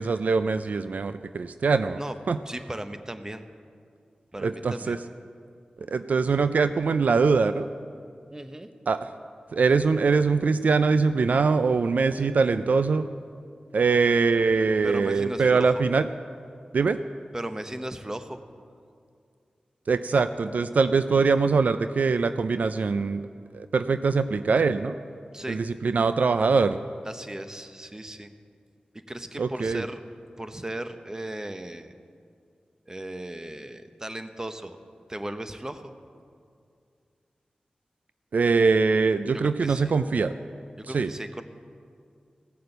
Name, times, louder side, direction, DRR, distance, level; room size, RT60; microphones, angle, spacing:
voice 1, 0.0-2.0 2.3-2.4 4.4-5.0 5.9-7.7 8.9-9.0 9.5-13.1 13.7-16.0 16.7-17.0 19.9-23.2 23.5-24.9 25.5-26.8 29.4-29.8 38.3-40.3 40.9-41.1, right 4 dB, 70° right, 11 dB, 0.4 m, -23 dB
voice 2, 2.5-3.5 4.3-5.0 8.3-8.7 14.8-15.8 17.3-18.4 25.3-25.6 27.0-28.3 28.9-30.0 30.4-31.9 32.9-34.8 35.1-35.9 39.3-39.9 40.8-41.4, right 1 dB, 20° right, 9 dB, 0.9 m, -36 dB
15.5 x 6.6 x 7.9 m, 2.3 s
cardioid pair, 45°, 3 cm